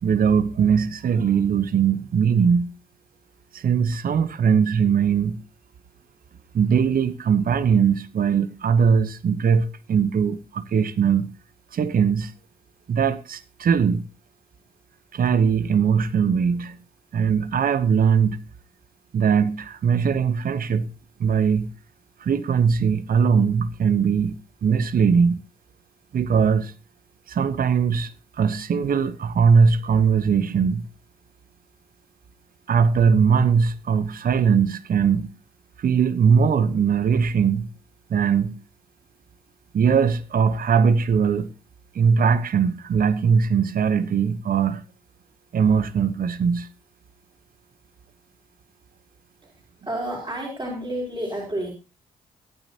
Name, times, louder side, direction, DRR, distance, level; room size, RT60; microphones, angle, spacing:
voice 1, 0.0-2.7 3.5-5.4 6.5-11.3 11.7-12.3 12.9-14.1 15.1-16.8 17.1-18.5 19.1-20.9 21.2-21.7 22.2-25.4 26.1-26.7 27.3-30.9 32.7-35.3 35.8-37.7 38.1-38.6 39.7-41.5 41.9-44.8 45.5-46.7, right 6 dB, 55° right, 0.9 m, -20 dB
voice 2, 49.4-51.7, right 1 dB, 25° right, 5.1 m, -30 dB
22.0 x 9.1 x 2.9 m
hypercardioid pair, 40°, 18 cm